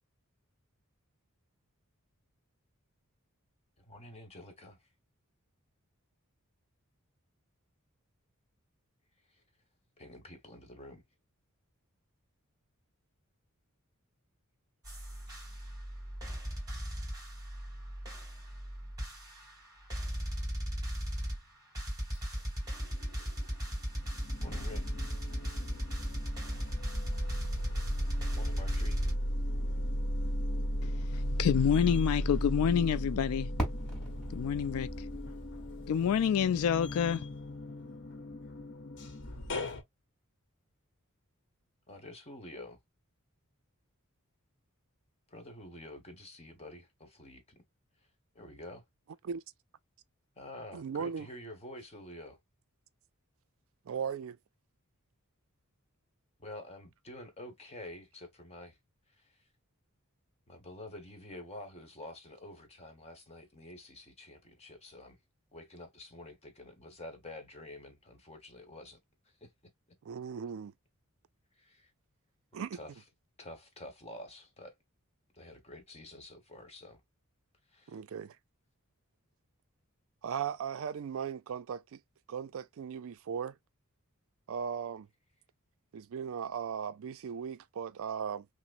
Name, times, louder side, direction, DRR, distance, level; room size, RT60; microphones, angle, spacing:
voice 1, 3.8-4.9 9.3-9.4 10.0-11.0 24.4-24.8 28.3-29.0 41.9-42.8 45.3-47.4 48.3-48.8 50.4-52.4 56.4-58.8 59.2-59.4 60.5-65.2 65.5-69.0 69.4-69.5 71.6-71.9 72.7-73.0 73.4-74.8 75.3-77.0 77.7-78.0, left 1 dB, 30° left, 1.2 m, -48 dB
sound 1, 14.8-29.1, equal, 15° right, 2.6 m, -37 dB
sound 2, 22.7-23.5 23.9-39.8, equal, 55° left, 0.9 m, -36 dB
voice 2, 31.4-33.5 34.3-34.9 35.9-37.2, left 8 dB, 75° left, 0.3 m, -27 dB
Fireworks, 33.6-36.4, equal, ahead, 2.5 m, -39 dB
voice 3, 50.7-51.3 53.9-54.4 70.0-70.7 72.5-72.8 77.9-78.4 80.2-82.0 82.3-83.5 84.5-85.1 85.9-88.5, right 7 dB, 65° right, 0.4 m, -37 dB
5.7 x 2.0 x 2.5 m
head